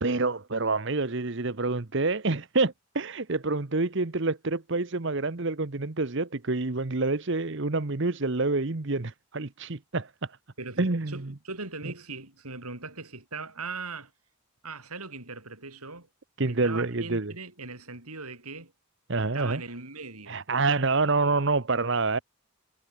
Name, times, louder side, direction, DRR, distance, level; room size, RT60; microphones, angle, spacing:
voice 1, 0.0-10.4 10.8-11.3 16.4-17.3 19.1-19.6 20.3-22.2, right 3 dB, 55° right, 1.0 m, -27 dB
voice 2, 10.6-14.1 14.6-16.1 16.5-18.7 19.2-20.4, right 3 dB, 85° right, 7.2 m, -40 dB
head